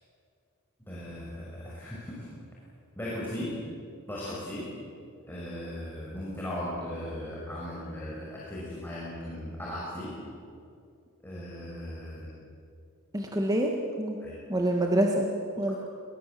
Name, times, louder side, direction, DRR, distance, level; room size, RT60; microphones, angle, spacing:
voice 1, 0.9-2.3 3.0-3.6 4.1-4.7 5.2-10.2 11.2-12.3 14.2-14.4, left 1 dB, 10° left, -6 dB, 5.8 m, -37 dB
voice 2, 13.1-13.7 14.0-14.2 14.5-15.8, right 1 dB, 15° right, 1 dB, 1.7 m, -26 dB
23.5 x 22.0 x 7.6 m, 2.4 s
head